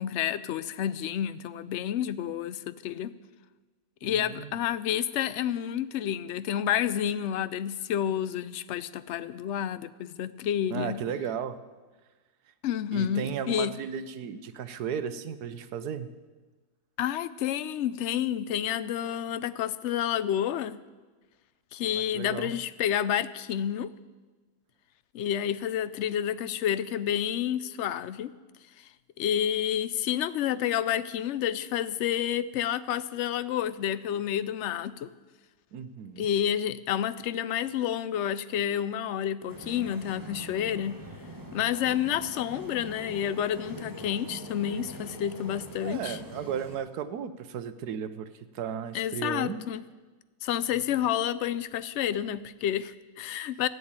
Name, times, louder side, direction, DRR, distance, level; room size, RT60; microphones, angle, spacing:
voice 1, 0.0-3.1 4.0-11.0 12.6-13.7 17.0-20.8 21.7-23.9 25.1-28.3 29.2-35.1 36.2-41.0 41.5-46.2 48.9-49.8 50.4-53.7, left 10 dB, 65° left, 15 dB, 0.7 m, -29 dB
voice 2, 4.0-4.6 10.7-11.6 12.9-16.1 21.9-22.5 35.7-36.3 45.8-49.6, right 7 dB, 80° right, 12 dB, 1.3 m, -35 dB
sound 1, 39.5-46.8, right 1 dB, 15° right, 1.3 m, -43 dB
14.5 x 8.2 x 8.8 m, 1.3 s
omnidirectional pair, 1.7 m